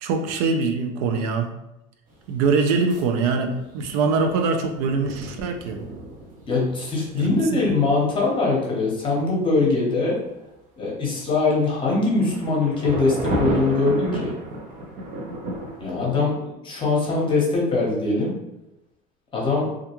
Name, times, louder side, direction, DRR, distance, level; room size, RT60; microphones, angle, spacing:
voice 1, 0.0-1.5 2.3-5.8 7.1-7.6, right 4 dB, 80° right, 5 dB, 0.4 m, -23 dB
sound 1, 2.1-3.1 3.4-8.0 11.7-16.2, right 1 dB, 45° right, 0.7 m, -33 dB
voice 2, 6.5-10.2 10.8-14.3 15.8-18.3 19.3-19.7, left 3 dB, 25° left, -3 dB, 0.9 m, -22 dB
2.4 x 2.2 x 2.9 m, 0.91 s
supercardioid pair, 130°, 20 cm